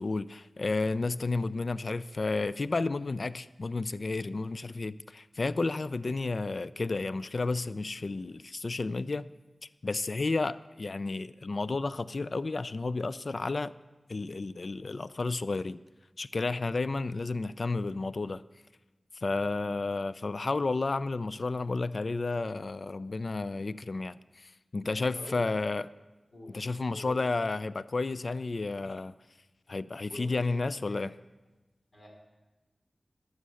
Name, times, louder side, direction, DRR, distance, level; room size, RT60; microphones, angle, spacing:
voice 1, 0.0-9.3 9.8-13.7 14.1-15.8 16.2-18.4 19.2-25.8 26.5-29.1 29.7-31.1, left 3 dB, 60° left, 0.3 m, -32 dB
voice 2, 25.1-25.6 26.3-26.6 26.9-27.3 30.1-30.6 30.9-31.0 31.9-32.1, equal, 45° left, 3.0 m, -46 dB
11.0 x 6.4 x 6.9 m
wide cardioid pair, 55°, 0 cm